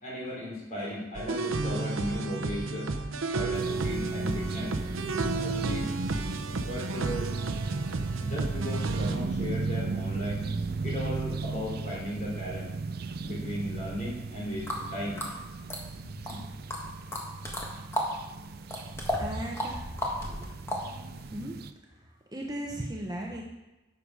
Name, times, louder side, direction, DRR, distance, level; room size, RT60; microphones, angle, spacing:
voice 1, 0.0-2.9 3.3-5.0 5.3-5.9 6.5-7.3 8.2-10.5 10.8-12.7 13.2-15.5 16.0-16.5, left 1 dB, 40° left, -4 dB, 3.4 m, -36 dB
boss theme, 1.1-9.2, right 3 dB, 90° right, 0.8 m, -32 dB
sound 1, 3.5-21.7, right 3 dB, 50° right, 0.5 m, -35 dB
sound 2, 14.7-14.8 15.2-16.3 16.7-18.1 18.4-21.3, left 1 dB, 15° left, 1.5 m, -33 dB
voice 2, 19.1-19.9 21.3-21.6 21.9-23.4, right 1 dB, 20° right, -1 dB, 1.0 m, -36 dB
11.0 x 6.9 x 4.8 m, 1.0 s
head